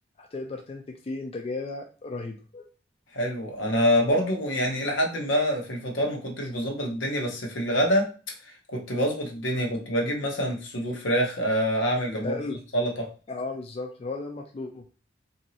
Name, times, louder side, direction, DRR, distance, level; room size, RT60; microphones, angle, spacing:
voice 1, 0.2-2.7 12.2-12.6 13.3-14.8, left 3 dB, 30° left, 3 dB, 0.3 m, -35 dB
voice 2, 3.1-8.1 8.4-12.4 12.7-13.1, equal, 85° left, 1 dB, 0.8 m, -26 dB
2.9 x 2.6 x 2.7 m, 0.36 s
head